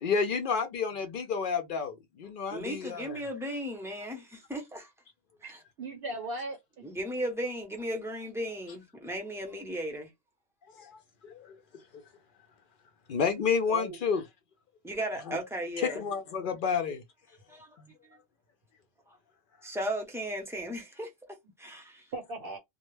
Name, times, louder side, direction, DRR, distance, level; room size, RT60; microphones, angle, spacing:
voice 1, 0.0-3.2 10.7-11.5 13.1-14.2 15.3-15.4 16.0-17.0 17.8-17.9, left 6 dB, 65° left, 0.5 m, -30 dB
voice 2, 2.5-4.9 5.4-5.6 6.8-10.1 14.8-16.1 17.5-17.7 19.1-19.2 19.6-22.1, equal, 5° right, 0.5 m, -36 dB
voice 3, 5.4-6.9 13.7-14.0 22.1-22.6, right 2 dB, 60° right, 0.8 m, -38 dB
2.2 x 2.1 x 3.0 m
omnidirectional pair, 1.3 m